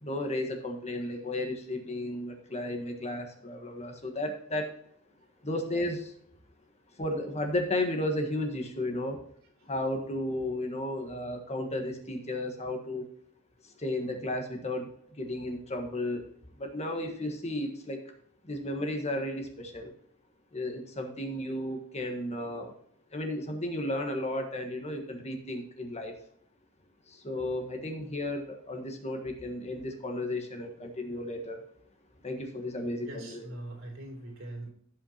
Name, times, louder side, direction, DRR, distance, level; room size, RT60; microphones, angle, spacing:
voice 1, 0.0-4.8 5.4-6.1 6.9-9.2 9.6-13.0 13.6-16.2 16.6-18.0 18.4-19.9 20.5-22.7 23.1-26.1 27.1-31.6 32.2-33.5, left 1 dB, 30° left, 4 dB, 1.5 m, -34 dB
voice 2, 33.0-34.7, right 1 dB, 65° right, 0 dB, 3.1 m, -42 dB
16.5 x 5.6 x 3.0 m, 0.65 s
head